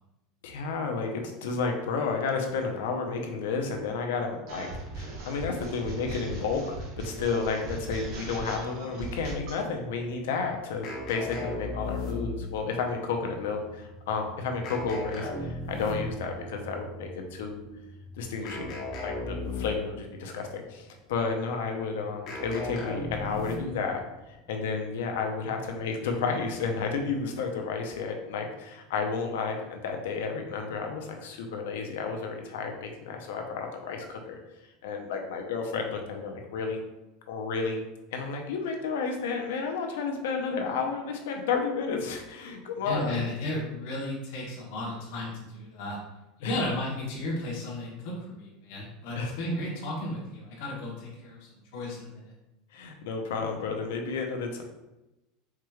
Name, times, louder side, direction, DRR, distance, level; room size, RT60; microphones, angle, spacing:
voice 1, 0.4-4.7 5.0-6.6 7.0-17.6 18.2-18.7 19.0-24.0 24.3-34.4 34.8-36.8 37.3-37.8 38.1-43.2 46.4-46.6 49.2-49.3 52.7-54.6, left 5 dB, 85° left, 3 dB, 0.7 m, -31 dB
sound 1, 4.5-9.6, right 2 dB, 55° right, 1.2 m, -38 dB
sound 2, 9.4-27.2, right 2 dB, 5° right, 0.3 m, -51 dB
sound 3, 10.8-12.6 14.6-16.3 18.4-20.0 22.3-23.9, left 2 dB, 45° left, 0.9 m, -35 dB
voice 2, 42.8-46.0 46.4-52.3, left 1 dB, 65° left, -5 dB, 1.1 m, -34 dB
4.7 x 3.0 x 2.3 m, 0.98 s
supercardioid pair, 140°, 0 cm